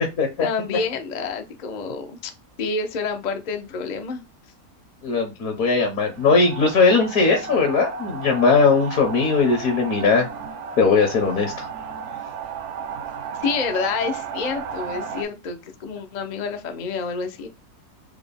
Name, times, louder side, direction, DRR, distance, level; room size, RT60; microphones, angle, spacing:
voice 1, 0.4-2.3 2.6-4.2 12.1-12.3 13.4-17.5, left 5 dB, 85° left, 0.3 m, -28 dB
voice 2, 5.0-10.3 10.8-11.7, left 4 dB, 70° left, 1.2 m, -19 dB
sound 1, 6.1-15.2, right 5 dB, 65° right, 0.8 m, -34 dB
4.9 x 2.1 x 3.4 m
omnidirectional pair, 1.6 m